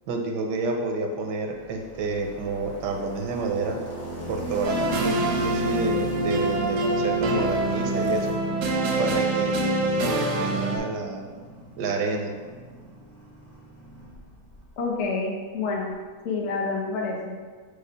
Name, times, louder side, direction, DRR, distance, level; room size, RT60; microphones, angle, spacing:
voice 1, 0.1-3.8 4.3-8.4 9.0-11.3 11.8-12.3, right 3 dB, 90° right, 2 dB, 1.2 m, -29 dB
sound 1, 1.5-14.7, equal, 15° left, 0.6 m, -37 dB
sound 2, 4.6-10.8, right 2 dB, 65° right, 0.8 m, -25 dB
voice 2, 14.8-15.9 16.2-17.4, left 4 dB, 55° left, -2 dB, 0.9 m, -28 dB
5.0 x 2.2 x 4.6 m, 1.5 s
omnidirectional pair, 1.8 m